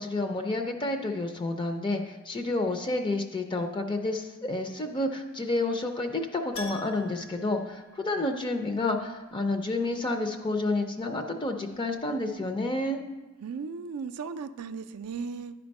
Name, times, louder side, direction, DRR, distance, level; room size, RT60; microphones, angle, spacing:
voice 1, 0.0-13.0, left 2 dB, 20° left, 5 dB, 0.4 m, -30 dB
Keyboard (musical), 6.5-8.6 8.8-8.9 11.7-11.8 12.0-12.1, left 3 dB, 75° left, 0.9 m, -44 dB
voice 2, 13.4-15.5, right 5 dB, 80° right, 11 dB, 0.4 m, -36 dB
10.0 x 4.4 x 5.2 m, 1.2 s
head